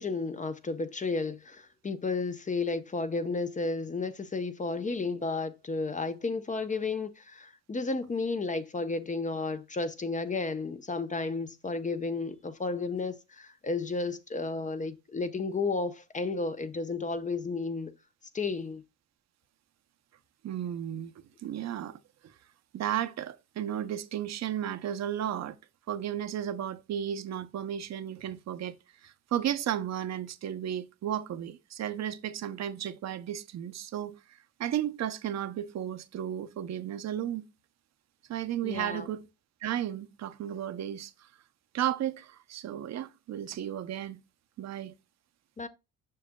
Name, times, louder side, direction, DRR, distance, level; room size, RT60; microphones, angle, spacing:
voice 1, 0.0-17.9 18.3-18.8 38.6-39.1 45.6-45.7, left 3 dB, 25° left, 0.7 m, -32 dB
voice 2, 20.4-21.1 21.4-22.3 22.7-25.6 25.9-28.8 29.0-34.2 34.6-37.5 38.3-39.2 39.6-41.3 41.7-44.2 44.6-44.9, right 10 dB, 60° right, 0.7 m, -34 dB
7.5 x 6.1 x 2.2 m
cardioid pair, 90°, 30 cm